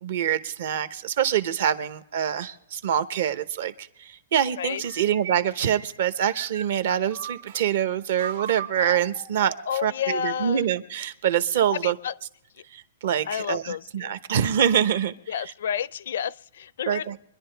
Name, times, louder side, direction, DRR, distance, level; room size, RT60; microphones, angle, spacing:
voice 1, 0.0-9.5 9.8-11.9 12.7-15.1 16.9-17.2, right 9 dB, 50° right, 0.8 m, -25 dB
voice 2, 4.6-5.0 9.7-10.6 11.7-12.1 13.3-14.1 15.3-17.1, left 8 dB, 60° left, 0.4 m, -30 dB
sound 1, 4.8-7.7 8.2-10.0, right 8 dB, 65° right, 1.4 m, -40 dB
25.5 x 11.0 x 3.4 m
hypercardioid pair, 170°, 0 cm